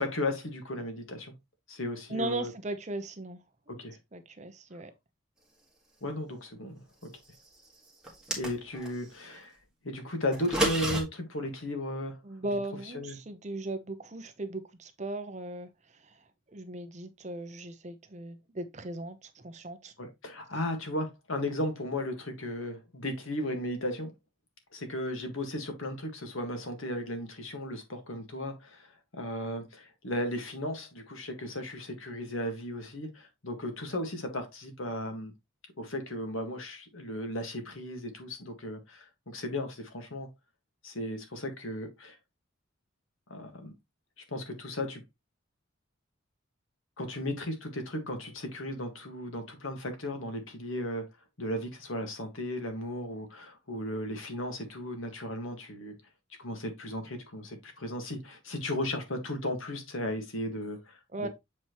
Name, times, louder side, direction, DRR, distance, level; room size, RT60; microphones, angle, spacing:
voice 1, 0.0-1.3 1.7-2.5 3.7-4.0 6.0-6.8 8.4-9.5 9.8-12.2 12.9-13.2 20.0-24.1 24.7-35.3 35.8-40.3 40.8-42.2 43.3-43.7 44.3-45.0 47.0-51.1 51.4-56.0 56.4-61.3, left 1 dB, 80° left, 1.7 m, -35 dB
voice 2, 2.1-3.4 3.7-3.8 4.1-4.9 12.2-15.7 16.0-16.2 16.5-19.9 61.1-61.3, right 2 dB, 35° right, 0.8 m, -37 dB
sound 1, 8.0-8.9 10.3-11.0, right 1 dB, 5° right, 1.6 m, -30 dB
7.5 x 4.4 x 3.0 m
head